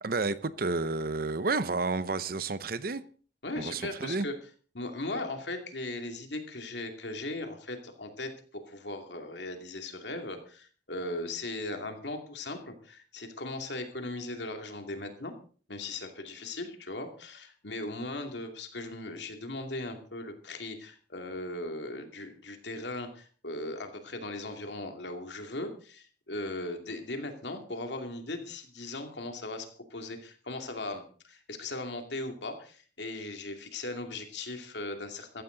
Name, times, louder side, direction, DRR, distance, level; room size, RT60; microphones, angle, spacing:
voice 1, 0.0-3.0 3.6-4.3, right 3 dB, 55° right, 0.8 m, -31 dB
voice 2, 3.4-4.3 4.7-15.3 15.7-35.4, left 2 dB, 70° left, 2.5 m, -38 dB
15.0 x 14.5 x 3.9 m
head